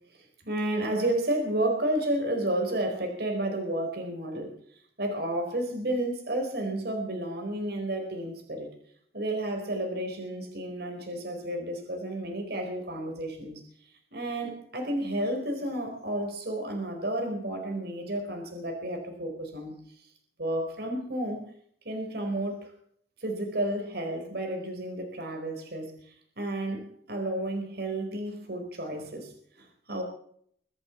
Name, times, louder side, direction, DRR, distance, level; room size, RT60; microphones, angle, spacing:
voice 1, 0.1-8.7 9.1-20.1 20.4-21.5 21.8-22.7 23.2-30.0, right 1 dB, 60° right, 4 dB, 4.6 m, -32 dB
24.0 x 8.3 x 7.2 m, 0.62 s
head